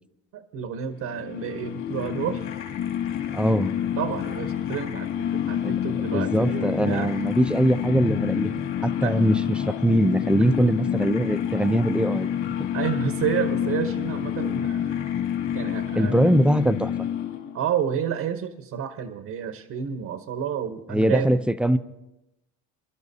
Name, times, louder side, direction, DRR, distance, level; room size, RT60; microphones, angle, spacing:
voice 1, 0.3-2.4 4.0-7.1 9.0-9.2 10.4-10.5 12.7-15.1 15.5-16.3 17.5-21.4, right 8 dB, 60° right, 8 dB, 1.0 m, -30 dB
sound 1, 1.0-17.6, left 9 dB, 60° left, 2.5 m, -28 dB
voice 2, 3.3-3.7 6.1-12.3 16.0-16.9 20.9-21.8, right 1 dB, 5° right, 11 dB, 0.4 m, -22 dB
27.0 x 12.0 x 2.7 m, 0.92 s
cardioid pair, 110°, 33 cm